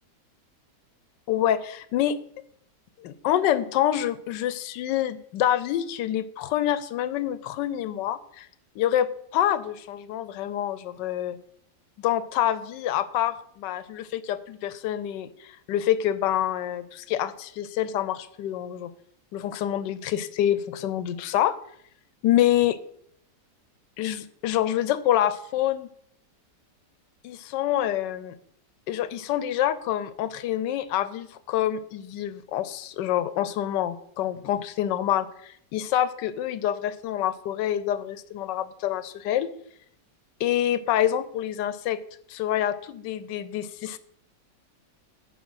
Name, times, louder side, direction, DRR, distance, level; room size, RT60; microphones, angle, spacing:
voice 1, 1.3-2.2 3.0-8.5 8.8-9.1 9.3-11.4 12.0-18.9 19.3-21.6 22.2-22.8 24.0-25.9 27.2-28.3 28.9-39.5 40.4-42.0 42.3-44.0, left 11 dB, 90° left, 13 dB, 1.3 m, -26 dB
9.4 x 3.8 x 6.2 m, 0.67 s
omnidirectional pair, 1.8 m